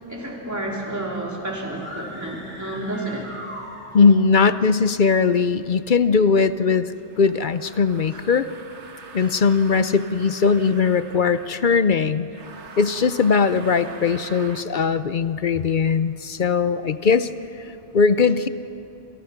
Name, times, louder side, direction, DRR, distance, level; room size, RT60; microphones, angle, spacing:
voice 1, 0.1-3.3 4.6-4.7 8.1-8.2 9.2-9.3, right 1 dB, 15° right, -2 dB, 3.6 m, -31 dB
sound 1, 1.7-4.3, equal, 25° left, 5.9 m, -39 dB
voice 2, 3.9-6.9 7.2-8.5 9.1-12.3 12.8-17.3 17.9-18.5, left 5 dB, 50° left, 12 dB, 0.8 m, -19 dB
sound 2, 7.1-11.7 12.3-14.7, right 4 dB, 75° right, 1.6 m, -43 dB
28.5 x 27.5 x 5.9 m, 2.8 s
omnidirectional pair, 1.2 m